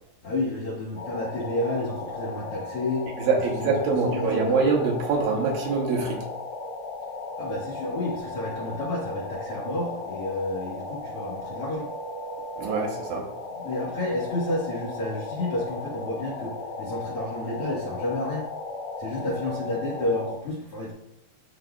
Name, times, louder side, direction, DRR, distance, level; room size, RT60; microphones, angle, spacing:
voice 1, 0.2-3.1 3.6-3.7 4.0-4.6 7.4-11.9 13.5-16.5 16.8-18.4 19.0-20.9, left 2 dB, 70° left, -4 dB, 1.3 m, -30 dB
sound 1, 0.9-20.3, left 3 dB, 30° left, 2.1 m, -36 dB
voice 2, 3.2-6.2 12.6-13.3, right 4 dB, 75° right, 0 dB, 2.4 m, -24 dB
13.5 x 4.7 x 2.3 m, 0.80 s
omnidirectional pair, 4.6 m